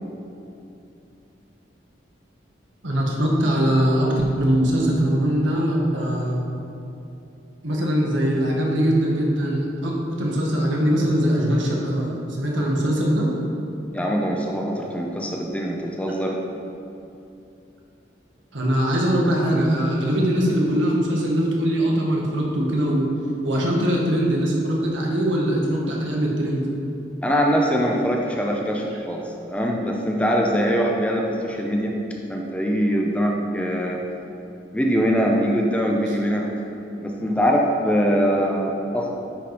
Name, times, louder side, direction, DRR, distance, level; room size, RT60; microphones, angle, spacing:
voice 1, 2.8-6.4 7.6-13.3 18.5-23.1 23.4-26.6, equal, 80° right, -2 dB, 1.5 m, -21 dB
voice 2, 13.9-16.4 27.2-29.2 29.5-31.9 32.3-34.0 34.7-36.5 37.0-39.1, equal, 5° left, 0 dB, 0.6 m, -22 dB
9.9 x 4.9 x 4.2 m, 2.8 s
head